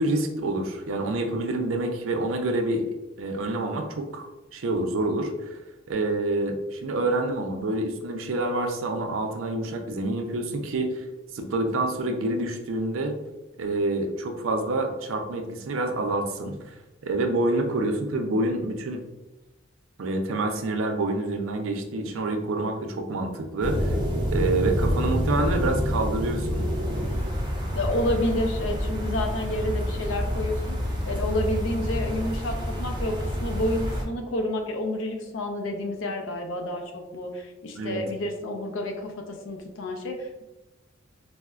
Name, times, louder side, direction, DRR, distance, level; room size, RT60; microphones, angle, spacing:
voice 1, 0.0-2.9 3.2-4.3 4.5-5.6 5.9-11.0 11.3-13.2 13.6-16.6 17.0-19.0 20.0-23.9 24.3-26.7 37.8-38.0, right 2 dB, 90° right, 5 dB, 0.4 m, -27 dB
sound 1, 23.6-34.0, equal, 25° right, 0.5 m, -28 dB
voice 2, 27.7-40.4, left 1 dB, 75° left, 4 dB, 0.5 m, -30 dB
4.0 x 2.1 x 2.3 m, 1.0 s
head